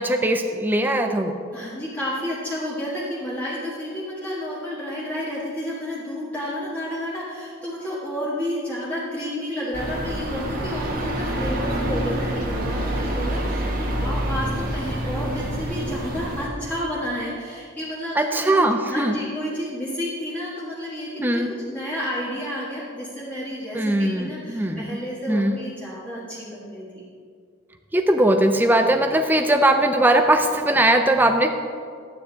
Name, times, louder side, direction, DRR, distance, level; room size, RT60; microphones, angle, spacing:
voice 1, 0.0-1.3 18.2-19.2 21.2-21.5 23.7-25.0 25.3-25.6 27.9-31.5, right 1 dB, 10° right, 5 dB, 0.4 m, -20 dB
voice 2, 1.5-27.0, equal, 10° left, -8 dB, 1.5 m, -31 dB
sound 1, 9.7-16.5, right 1 dB, 45° right, 1.5 m, -27 dB
11.5 x 9.4 x 4.0 m, 2.2 s
head